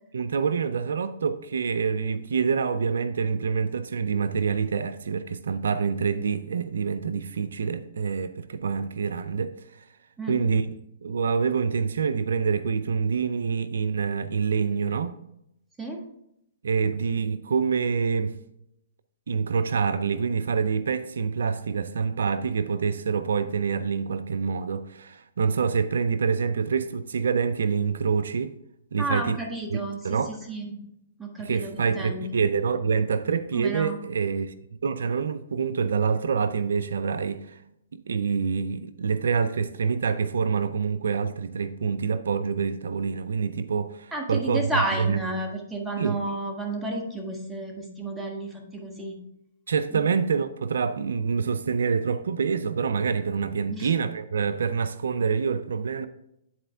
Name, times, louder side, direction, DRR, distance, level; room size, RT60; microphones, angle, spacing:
voice 1, 0.1-9.8 10.3-15.2 16.6-18.3 19.3-28.6 28.9-29.4 29.7-29.8 30.0-30.3 31.4-34.5 34.8-37.6 38.1-44.7 45.0-45.2 46.0-46.2 49.7-56.1, right 5 dB, 80° right, 0.4 m, -26 dB
voice 2, 29.0-30.7 31.2-32.3 33.5-34.0 44.1-49.2 49.9-50.0 53.7-53.9, right 1 dB, 10° right, 1.4 m, -32 dB
9.9 x 4.3 x 3.4 m
hypercardioid pair, 135°, 0 cm